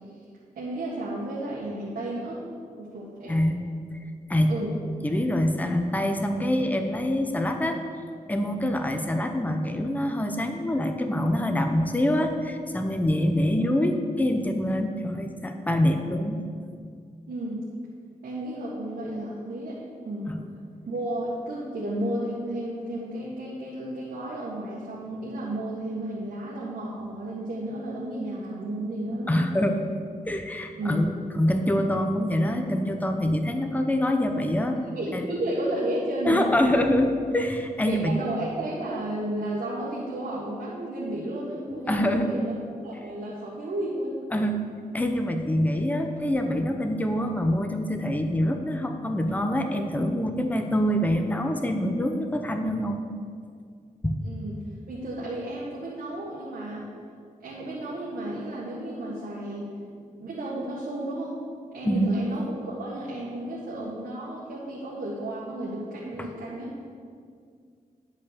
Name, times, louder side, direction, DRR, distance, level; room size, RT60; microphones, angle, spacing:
voice 1, 0.5-2.5 2.8-3.4 4.5-4.7 17.3-17.6 18.2-20.4 20.8-29.4 30.8-31.0 34.8-36.5 37.9-42.5 42.8-44.1 54.2-54.6 54.9-56.9 57.4-59.7 60.2-61.4 61.7-66.7, right 1 dB, 90° right, -6 dB, 1.6 m, -32 dB
voice 2, 3.3-3.7 4.3-4.6 5.0-7.8 8.3-16.4 20.3-20.4 29.3-29.8 30.3-34.8 35.1-35.3 36.2-38.2 41.7-42.3 44.3-53.0 54.0-54.2 61.8-62.2 66.2-66.3, left 1 dB, 10° left, 5 dB, 0.8 m, -25 dB
10.5 x 5.6 x 6.7 m, 2.1 s
wide cardioid pair, 95°, 15 cm